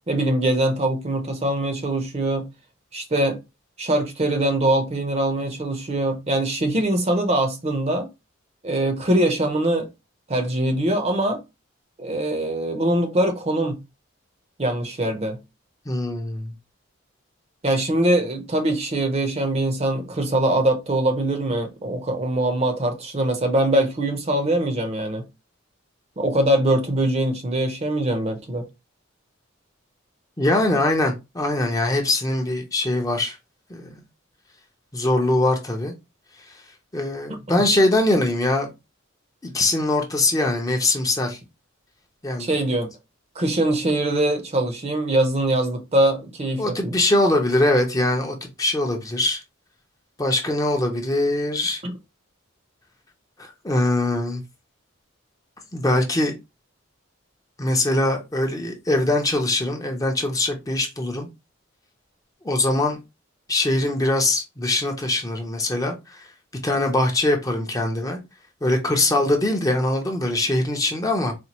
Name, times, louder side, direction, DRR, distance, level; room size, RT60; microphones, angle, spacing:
voice 1, 0.0-2.5 2.9-3.4 3.8-8.1 8.6-9.9 10.3-11.4 12.0-13.8 14.6-15.4 17.6-25.3 26.2-28.7 37.5-37.6 42.4-42.9 43.4-47.0 51.8-51.9, right 1 dB, 30° right, 0.6 m, -22 dB
voice 2, 15.9-16.5 30.4-33.4 33.7-34.0 34.9-35.9 36.5-36.6 36.9-38.7 39.4-41.4 42.2-42.5 46.6-49.4 50.2-51.8 53.4-54.4 55.7-56.3 57.6-61.3 62.4-63.0 63.5-66.3 66.6-68.2 68.6-71.3, left 2 dB, 15° left, 0.6 m, -22 dB
4.2 x 2.2 x 2.9 m
head